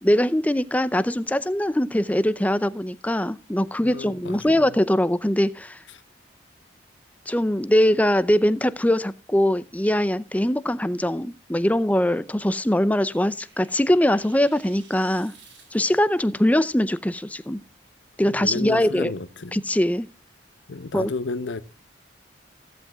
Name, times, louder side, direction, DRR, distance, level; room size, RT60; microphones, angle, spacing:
voice 1, 0.0-5.8 7.3-15.3 15.7-17.6 18.2-19.1 19.5-20.1 20.9-21.1, left 1 dB, 10° left, 0.5 m, -22 dB
voice 2, 3.8-4.8 5.9-6.0 18.2-19.6 20.7-21.6, left 3 dB, 80° left, 0.8 m, -32 dB
sound 1, 12.2-16.3, right 4 dB, 90° right, 5.4 m, -54 dB
14.5 x 13.5 x 2.4 m
head